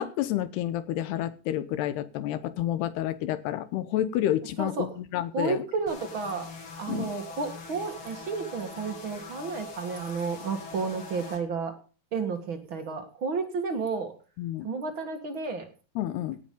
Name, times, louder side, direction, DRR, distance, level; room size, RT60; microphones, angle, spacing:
voice 1, 0.0-5.6 6.9-7.1 14.4-14.7 16.0-16.4, left 12 dB, 90° left, 13 dB, 3.2 m, -29 dB
voice 2, 5.3-6.5 6.8-11.7 12.1-14.1 14.6-15.7, right 4 dB, 45° right, 6 dB, 1.8 m, -32 dB
sound 1, 5.9-11.4, left 3 dB, 40° left, 2.5 m, -43 dB
17.5 x 8.2 x 5.4 m, 0.37 s
omnidirectional pair, 4.6 m